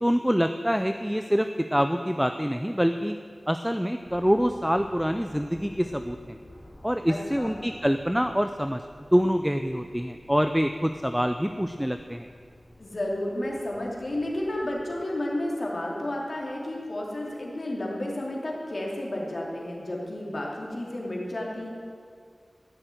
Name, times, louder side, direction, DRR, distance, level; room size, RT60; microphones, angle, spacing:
voice 1, 0.0-3.2 3.5-6.4 6.8-8.8 9.1-12.3, equal, 5° right, 7 dB, 0.5 m, -25 dB
sound 1, 4.0-15.0, left 1 dB, 30° left, 3.2 m, -52 dB
voice 2, 7.1-7.6 12.8-21.7, left 1 dB, 65° left, -3 dB, 2.9 m, -32 dB
14.5 x 6.6 x 9.1 m, 2.1 s
wide cardioid pair, 70°, 0 cm